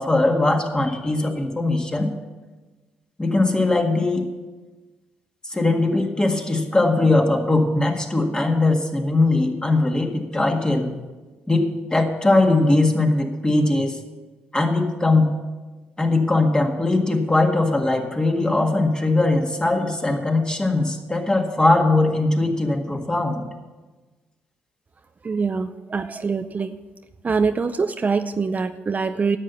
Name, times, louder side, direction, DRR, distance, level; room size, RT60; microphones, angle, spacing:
voice 1, 0.0-2.1 3.2-4.3 5.4-11.0 11.5-14.0 14.5-15.3 16.0-23.5, left 2 dB, 15° left, 3 dB, 1.8 m, -20 dB
voice 2, 25.2-26.8 27.2-29.4, right 5 dB, 35° right, 9 dB, 0.5 m, -24 dB
11.0 x 7.7 x 7.0 m, 1.2 s
supercardioid pair, 70°, 5 cm